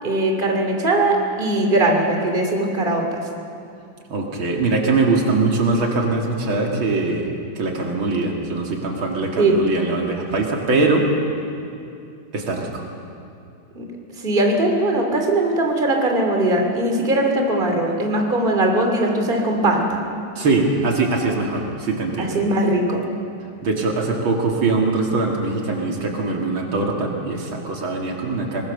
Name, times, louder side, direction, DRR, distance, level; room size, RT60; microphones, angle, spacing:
voice 1, 0.0-3.2 9.4-9.6 13.7-13.8 14.2-20.0 22.2-23.0, right 2 dB, 25° right, 2 dB, 2.7 m, -20 dB
voice 2, 4.1-7.3 7.6-11.1 12.3-12.8 20.4-22.4 23.6-28.6, right 3 dB, 75° right, 0 dB, 3.1 m, -22 dB
23.5 x 21.5 x 6.7 m, 2.6 s
omnidirectional pair, 2.2 m